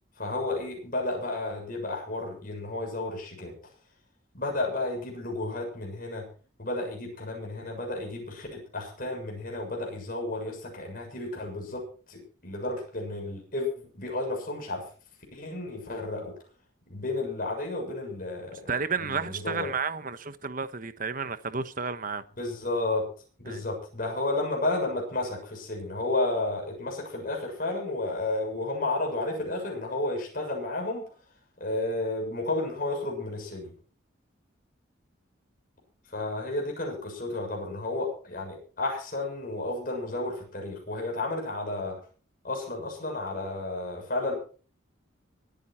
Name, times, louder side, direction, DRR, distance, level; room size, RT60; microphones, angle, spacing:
voice 1, 0.2-3.5 4.3-6.3 6.6-11.8 12.1-13.7 13.9-14.8 15.3-16.3 16.9-18.6 19.0-19.7 22.4-23.0 23.4-31.0 31.6-33.7 36.1-42.0 42.4-44.3, left 2 dB, 45° left, 6.9 m, -32 dB
voice 2, 18.7-22.2 23.5-23.6, right 5 dB, 40° right, 1.2 m, -32 dB
24.5 x 9.5 x 4.5 m
head